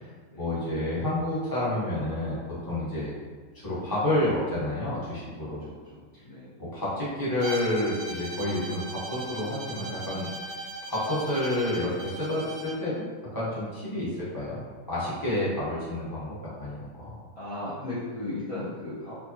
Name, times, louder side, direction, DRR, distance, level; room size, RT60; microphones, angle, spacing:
voice 1, 0.4-2.4 2.7-3.1 3.6-5.6 6.7-10.3 10.9-13.0 13.3-14.6 14.9-17.1, left 1 dB, 15° left, -9 dB, 1.0 m, -29 dB
voice 2, 5.6-6.5 17.3-19.1, left 2 dB, 35° left, -11 dB, 0.6 m, -36 dB
Bowed string instrument, 7.4-12.9, right 3 dB, 70° right, 1.0 m, -39 dB
4.6 x 2.5 x 2.8 m, 1.5 s
omnidirectional pair, 1.7 m